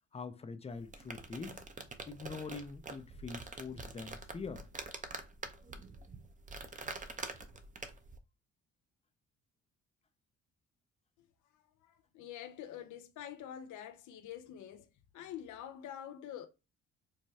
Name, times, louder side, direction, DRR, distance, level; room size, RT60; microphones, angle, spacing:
voice 1, 0.1-1.7 2.1-4.7, left 4 dB, 20° left, 0.5 m, -44 dB
sound 1, 0.7-8.2, right 3 dB, 25° right, 0.7 m, -46 dB
voice 2, 11.5-14.9 15.1-16.5, left 10 dB, 75° left, 0.6 m, -46 dB
4.7 x 2.2 x 2.7 m
cardioid pair, 90°, 30 cm